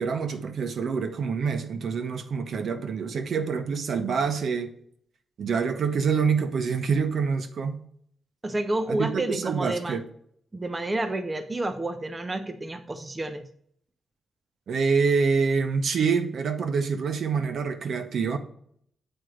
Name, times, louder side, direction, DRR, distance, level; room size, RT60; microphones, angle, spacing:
voice 1, 0.0-4.7 5.4-7.8 8.9-10.0 14.7-18.4, right 5 dB, 55° right, 0.7 m, -26 dB
voice 2, 8.4-10.0 10.5-13.5, right 2 dB, 15° right, 0.5 m, -30 dB
8.0 x 4.4 x 5.0 m
wide cardioid pair, 165°, 0 cm